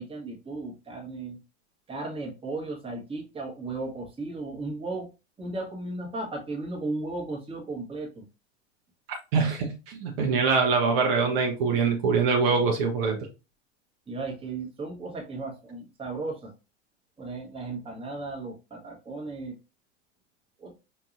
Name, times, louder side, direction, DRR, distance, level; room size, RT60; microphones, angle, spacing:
voice 1, 0.0-1.4 1.9-5.1 5.4-8.2 14.1-16.5 17.2-19.6 20.6-20.7, right 3 dB, 15° right, -1 dB, 1.2 m, -35 dB
voice 2, 9.3-13.2, right 5 dB, 55° right, 2 dB, 0.9 m, -24 dB
4.7 x 2.7 x 2.5 m, 0.29 s
figure-of-eight pair, 80°, 35 cm